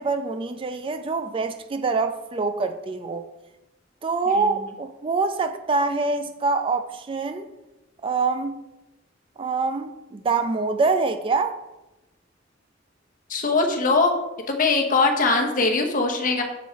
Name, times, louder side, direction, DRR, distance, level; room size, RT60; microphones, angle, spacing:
voice 1, 0.0-3.3 4.0-7.5 8.0-8.6 9.4-11.6, right 4 dB, 25° right, 0.4 m, -25 dB
voice 2, 13.3-14.1 14.5-16.4, left 3 dB, 45° left, 0.9 m, -21 dB
6.9 x 4.5 x 4.5 m
head